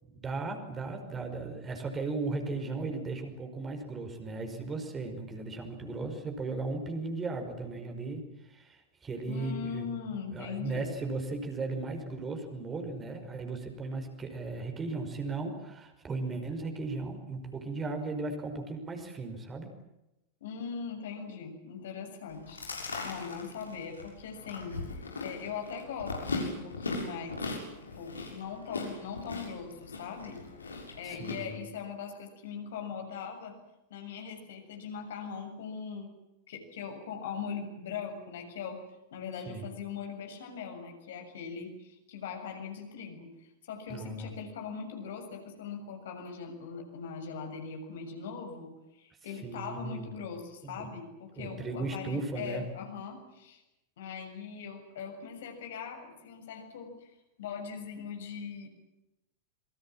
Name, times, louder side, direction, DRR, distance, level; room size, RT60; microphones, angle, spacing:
voice 1, 0.0-9.9 10.3-19.7 31.0-31.5 39.5-39.7 43.9-44.3 49.4-50.1 50.6-50.9 51.4-52.6, right 3 dB, 20° right, 5 dB, 5.5 m, -36 dB
voice 2, 9.3-10.9 20.4-22.6 23.0-27.4 28.0-30.4 30.7-33.6 33.9-36.1 36.5-38.8 39.1-53.6 54.0-57.1 57.4-58.7, left 6 dB, 60° left, 4 dB, 7.1 m, -40 dB
Chewing mastication, 22.3-31.3, left 3 dB, 75° left, 7.0 m, -39 dB
28.0 x 24.0 x 7.6 m, 0.92 s
figure-of-eight pair, 90°, 0 cm